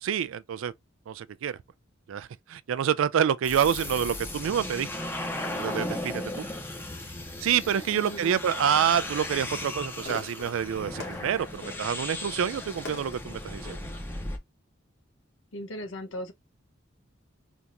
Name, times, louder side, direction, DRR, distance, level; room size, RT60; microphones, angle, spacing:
voice 1, 0.0-0.7 1.1-1.6 2.1-4.9 5.5-6.4 7.4-13.8, right 8 dB, 85° right, 0.3 m, -27 dB
sound 1, 3.4-14.4, left 1 dB, 10° left, 0.7 m, -36 dB
voice 2, 7.9-8.4 15.5-16.3, equal, 75° left, 0.9 m, -38 dB
Fireworks, 8.8-14.0, left 3 dB, 60° left, 1.3 m, -45 dB
3.4 x 2.8 x 2.6 m
head